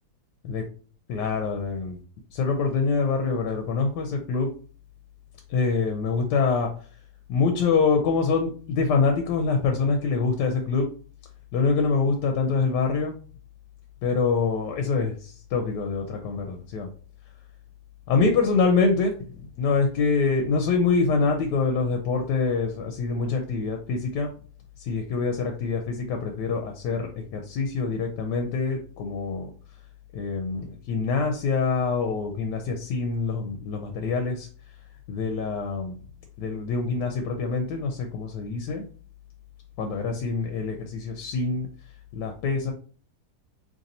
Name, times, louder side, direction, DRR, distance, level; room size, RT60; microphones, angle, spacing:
voice 1, 1.1-2.0 2.3-4.5 5.5-6.7 7.3-10.9 11.5-13.1 14.0-16.9 18.1-24.3 24.8-29.5 30.1-34.5 35.1-35.9 36.4-38.8 39.8-41.7 42.1-42.7, left 4 dB, 90° left, 4 dB, 1.2 m, -25 dB
3.1 x 2.6 x 4.0 m, 0.42 s
omnidirectional pair, 1.8 m